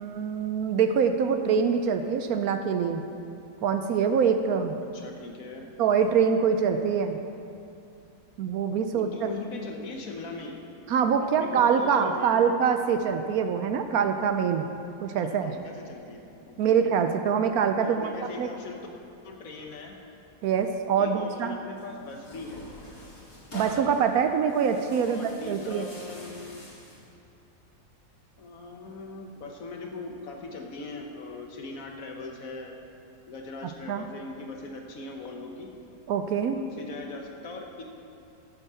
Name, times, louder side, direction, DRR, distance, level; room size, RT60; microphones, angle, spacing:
voice 1, 0.0-3.0 3.6-4.8 5.8-7.2 8.4-9.1 10.9-14.7 15.0-15.5 16.6-18.1 18.4-18.5 20.4-21.6 23.5-25.8 33.9-34.1 36.1-36.6, right 7 dB, 70° right, 7 dB, 1.0 m, -24 dB
voice 2, 4.8-5.6 8.9-10.6 11.2-12.4 15.2-16.8 17.8-18.9 19.2-20.0 21.0-22.7 24.9-26.7 28.4-32.8 33.3-35.7 36.4-37.8, left 3 dB, 60° left, 2 dB, 1.4 m, -40 dB
Tearing, 21.8-27.1, left 1 dB, 45° left, 2.5 m, -46 dB
8.2 x 7.3 x 6.9 m, 2.7 s
omnidirectional pair, 1.8 m